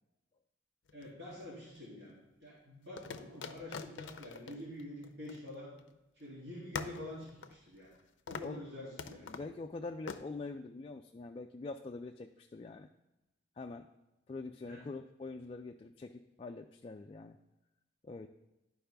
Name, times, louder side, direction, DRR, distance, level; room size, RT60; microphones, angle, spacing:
sound 1, 0.9-1.8 3.0-5.9 6.2-6.3 6.7-8.0 8.3-8.6 9.0-9.5 10.1-10.2, left 5 dB, 85° left, 0.5 m, -45 dB
voice 1, 0.9-5.7 6.2-7.9 8.3-9.4 14.6-14.8, left 1 dB, 60° right, -7 dB, 2.6 m, -47 dB
voice 2, 9.3-12.9 13.6-13.9 14.3-17.4 18.0-18.3, left 3 dB, 30° left, 4 dB, 0.3 m, -44 dB
11.5 x 4.7 x 3.4 m, 0.98 s
head